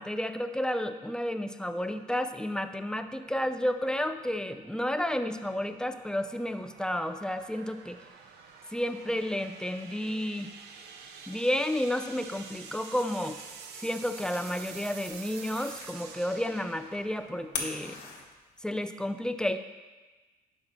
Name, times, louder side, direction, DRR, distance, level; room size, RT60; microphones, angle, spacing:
voice 1, 0.0-8.0 8.7-10.5 11.3-13.4 13.7-18.0 18.6-19.6, left 1 dB, 5° left, 9 dB, 0.4 m, -31 dB
sound 1, 2.9-18.3, right 6 dB, 80° right, 0.8 m, -49 dB
sound 2, 11.9-18.8, left 5 dB, 80° left, 1.2 m, -44 dB
11.0 x 6.0 x 2.6 m, 1.2 s
cardioid pair, 110°, 17 cm